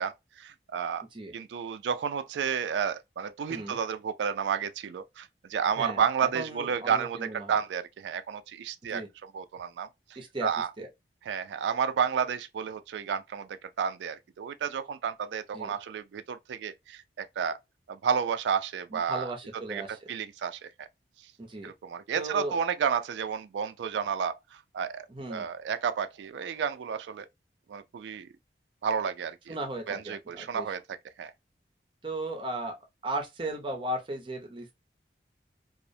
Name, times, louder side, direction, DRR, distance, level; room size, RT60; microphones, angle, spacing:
voice 1, 0.0-1.0 1.3-9.9 10.4-10.7 11.3-17.6 17.9-19.3 19.7-20.9 21.6-27.3 27.7-28.3 28.8-29.6 29.9-31.3, right 7 dB, 80° right, 0.3 m, -31 dB
voice 2, 3.5-3.8 5.8-6.0 6.3-7.6 8.9-9.1 10.2-10.5 10.8-10.9 15.5-15.7 18.9-20.1 21.4-21.7 22.2-22.6 25.1-25.5 29.5-30.7 32.0-32.7 33.0-34.8, right 1 dB, 30° right, 0.6 m, -36 dB
2.4 x 2.1 x 2.5 m
head